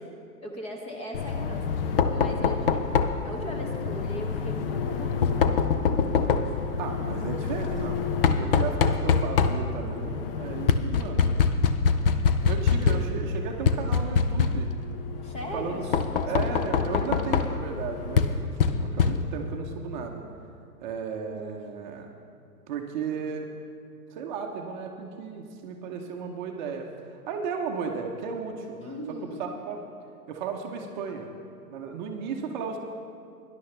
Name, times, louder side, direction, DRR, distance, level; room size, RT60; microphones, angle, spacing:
voice 1, 0.4-1.6 2.1-2.8 3.2-5.6 6.5-6.6 15.2-15.9 16.1-16.6 28.8-29.4, equal, 15° left, 1 dB, 1.0 m, -38 dB
Knock, 1.1-19.6, left 5 dB, 35° left, 0.6 m, -25 dB
voice 2, 6.8-11.3 12.4-14.7 15.5-15.8 16.3-20.2 20.8-22.1 22.7-23.5 24.1-29.0 29.4-29.8 30.3-31.3 31.7-32.8, right 6 dB, 30° right, 2 dB, 0.9 m, -34 dB
18.0 x 11.0 x 3.3 m, 2.3 s
figure-of-eight pair, 125°, 47 cm